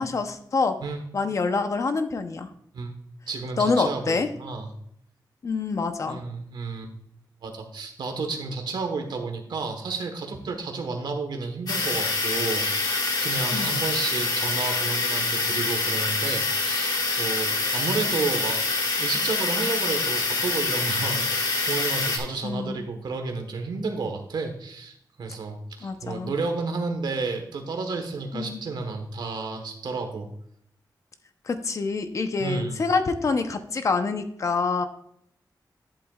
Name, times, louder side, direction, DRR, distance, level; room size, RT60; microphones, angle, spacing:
voice 1, 0.0-0.8 1.1-2.5 3.6-4.3 5.4-6.2 13.5-13.7 22.4-22.8 25.8-26.3 28.3-28.6 31.5-34.9, left 4 dB, 45° left, 8 dB, 0.7 m, -26 dB
voice 2, 3.3-4.7 6.1-6.9 7.4-18.6 19.0-30.3 32.4-32.8, right 4 dB, 80° right, 4 dB, 1.2 m, -31 dB
sound 1, 11.7-22.2, left 3 dB, 65° left, 1.6 m, -26 dB
11.0 x 7.6 x 2.4 m, 0.70 s
wide cardioid pair, 175°, 8 cm